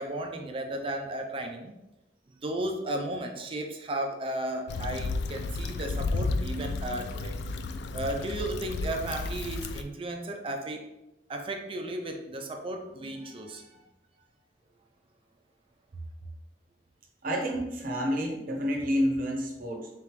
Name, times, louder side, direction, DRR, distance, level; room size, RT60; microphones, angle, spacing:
voice 1, 0.0-1.7 2.4-7.4 7.9-10.8 11.3-13.7, right 1 dB, 30° right, 3 dB, 0.4 m, -34 dB
Stream / Traffic noise roadway noise / Trickle dribble, 4.7-9.8, left 3 dB, 70° left, 0.3 m, -32 dB
voice 2, 17.2-19.9, equal, 55° right, 1 dB, 0.8 m, -29 dB
3.7 x 3.5 x 3.0 m, 0.95 s
head